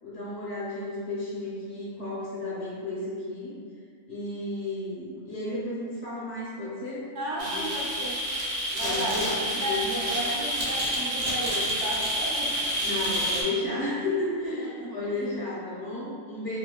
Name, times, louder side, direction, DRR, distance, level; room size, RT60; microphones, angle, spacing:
voice 1, 0.0-3.5 4.1-7.0 7.4-7.8 8.7-9.8 12.8-16.6, left 2 dB, 65° left, -8 dB, 0.9 m, -33 dB
voice 2, 7.1-8.2 8.7-12.5 14.3-15.3, right 1 dB, 65° right, -5 dB, 0.9 m, -34 dB
sound 1, 7.4-13.4, equal, 40° right, 0.6 m, -29 dB
3.6 x 2.2 x 2.3 m, 2.1 s
omnidirectional pair, 1.4 m